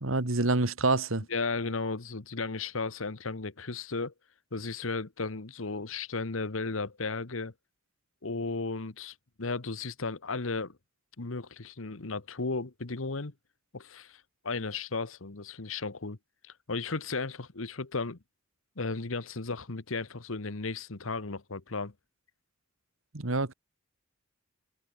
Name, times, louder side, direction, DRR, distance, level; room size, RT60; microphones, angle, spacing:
voice 1, 0.0-1.2 23.1-23.5, right 3 dB, 70° right, 1.8 m, -27 dB
voice 2, 1.3-4.1 4.5-7.5 8.2-10.8 11.2-13.3 13.7-16.2 16.4-18.2 18.8-21.9, left 3 dB, 70° left, 1.3 m, -35 dB
head